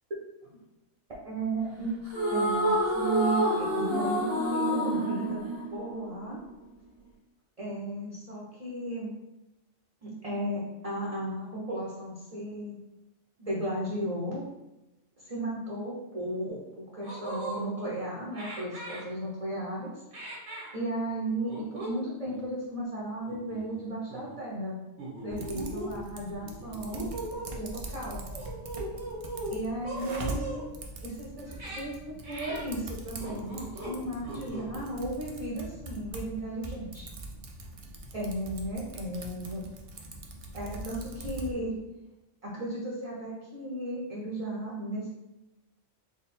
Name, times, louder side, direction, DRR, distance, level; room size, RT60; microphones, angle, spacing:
voice 1, 1.2-1.9 2.3-5.4 5.7-6.4 7.6-9.1 10.0-12.8 13.4-14.4 15.2-20.0 20.7-24.8 25.2-27.1 27.5-28.2 29.5-30.6 31.0-37.1 38.1-39.6 40.5-41.7 42.4-45.1, right 1 dB, 35° right, -5 dB, 0.7 m, -35 dB
sound 1, 2.1-6.5, equal, 80° left, 1.6 m, -28 dB
sound 2, 16.5-16.6 17.0-17.6 18.3-19.0 20.1-20.7 21.5-21.9 22.3-22.4 23.3-23.8 24.1-24.3 25.0-25.9 26.4-27.5 28.3-29.5 29.8-30.6 31.5-31.8 32.2-32.6 33.2-34.0 34.2-34.8, right 2 dB, 85° right, 1.4 m, -39 dB
Typing, 25.3-41.5, right 2 dB, 65° right, 0.3 m, -42 dB
3.6 x 2.3 x 4.2 m, 0.99 s
omnidirectional pair, 1.2 m